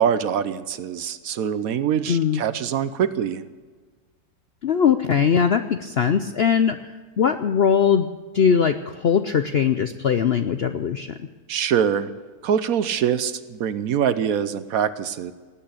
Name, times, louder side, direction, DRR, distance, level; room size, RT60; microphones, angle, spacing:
voice 1, 0.0-3.4 11.5-12.1 12.4-15.3, right 8 dB, 65° right, 14 dB, 1.1 m, -24 dB
voice 2, 2.1-2.4 4.6-6.8 7.2-8.1 8.3-11.1, left 7 dB, 65° left, 10 dB, 0.6 m, -20 dB
18.5 x 8.9 x 8.4 m, 1.4 s
omnidirectional pair, 1.7 m